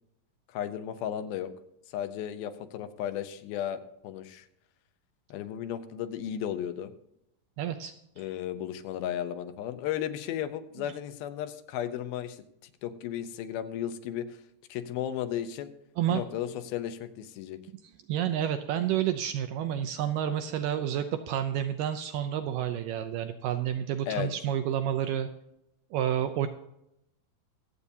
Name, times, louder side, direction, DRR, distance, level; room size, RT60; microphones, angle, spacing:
voice 1, 0.5-1.5 1.9-4.5 5.3-6.9 8.2-14.4 14.7-15.7 16.1-17.6 24.1-24.3, left 10 dB, 85° left, 10 dB, 2.6 m, -34 dB
voice 2, 7.6-8.3 16.0-16.2 18.1-25.3 25.9-26.5, right 10 dB, 80° right, 8 dB, 2.0 m, -30 dB
24.0 x 8.3 x 2.7 m, 0.83 s
omnidirectional pair, 4.2 m